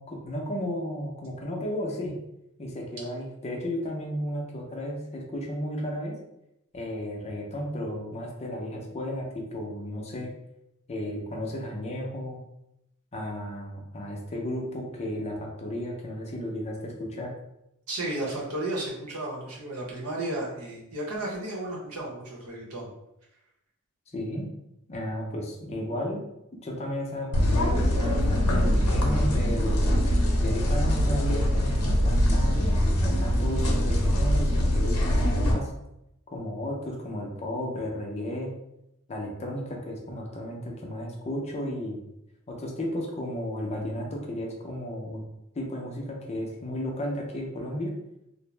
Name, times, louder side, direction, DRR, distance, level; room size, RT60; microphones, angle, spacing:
voice 1, 0.0-2.2 2.6-6.2 6.7-10.3 10.9-12.4 13.1-17.3 24.1-24.5 24.9-26.2 26.6-30.1 30.4-32.6 33.0-35.7 36.3-38.5 39.1-42.0 42.5-45.2 45.5-47.9, equal, 30° left, 0 dB, 0.5 m, -33 dB
voice 2, 17.9-22.9, right 1 dB, 80° right, -4 dB, 0.9 m, -33 dB
sound 1, 27.3-35.5, equal, 80° left, 0.6 m, -23 dB
2.5 x 2.0 x 3.2 m, 0.85 s
head